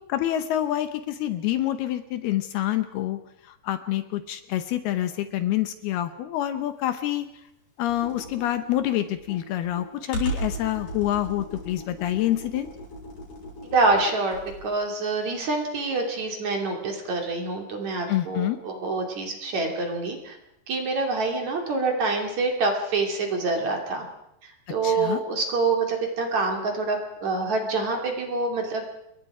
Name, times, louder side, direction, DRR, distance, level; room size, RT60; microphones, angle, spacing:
voice 1, 0.1-3.2 3.5-7.3 7.8-12.7 18.1-18.6 24.8-25.2, left 13 dB, 75° left, 10 dB, 2.7 m, -27 dB
Computer keyboard, 7.9-14.7, right 1 dB, 55° left, 8.5 m, -37 dB
voice 2, 13.6-20.4 20.7-24.1 24.4-28.9, right 3 dB, 45° right, 3 dB, 3.6 m, -26 dB
28.5 x 22.0 x 4.9 m, 0.83 s
omnidirectional pair, 5.0 m